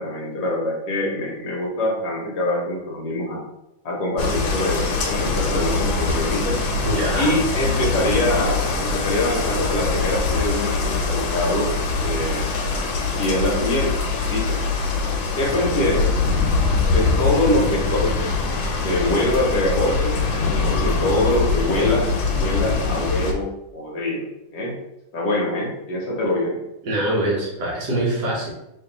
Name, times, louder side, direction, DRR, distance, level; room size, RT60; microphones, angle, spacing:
voice 1, 0.0-3.4 3.8-6.7 7.2-11.8 12.0-12.5 13.1-14.6 15.4-16.2 16.9-18.4 18.8-20.2 20.7-24.8 25.1-26.6, left 1 dB, 60° left, -2 dB, 1.2 m, -24 dB
sound 1, 4.2-23.3, left 4 dB, 80° left, 1.4 m, -23 dB
voice 2, 6.8-7.4 26.8-28.5, right 1 dB, 65° right, -3 dB, 1.4 m, -23 dB
3.1 x 2.8 x 3.8 m, 0.91 s
omnidirectional pair, 2.2 m